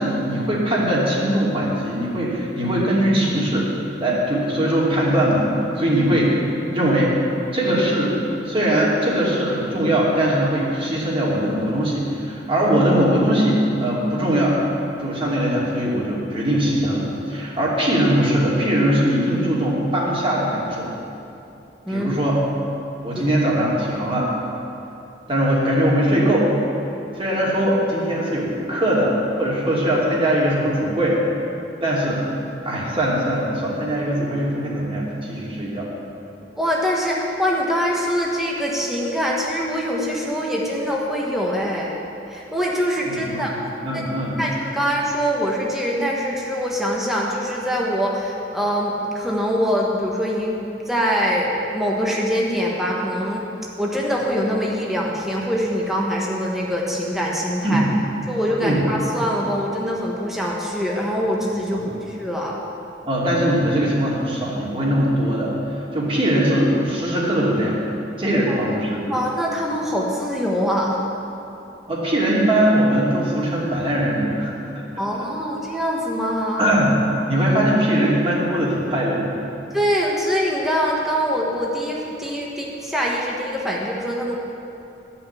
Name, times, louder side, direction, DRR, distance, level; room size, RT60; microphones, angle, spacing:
voice 1, 0.0-3.7 4.0-5.5 5.8-6.4 6.7-7.1 7.5-8.2 8.4-20.9 21.9-22.4 23.0-24.3 25.3-26.5 27.1-31.2 31.8-32.2 32.6-35.9 43.0-43.6 43.8-44.4 57.6-57.8 58.6-58.8 61.7-61.9 63.1-65.5 65.9-67.8 68.2-69.1 71.9-74.5 74.9-75.1 76.6-76.9 77.3-79.4, right 1 dB, 30° right, -6 dB, 2.7 m, -21 dB
voice 2, 36.6-41.9 42.3-43.5 43.9-44.0 44.4-50.5 50.9-53.5 53.8-57.8 58.3-62.6 68.5-68.6 68.9-71.0 75.0-76.7 79.7-84.4, equal, ahead, -3 dB, 1.3 m, -23 dB
13.0 x 5.7 x 8.4 m, 2.7 s
head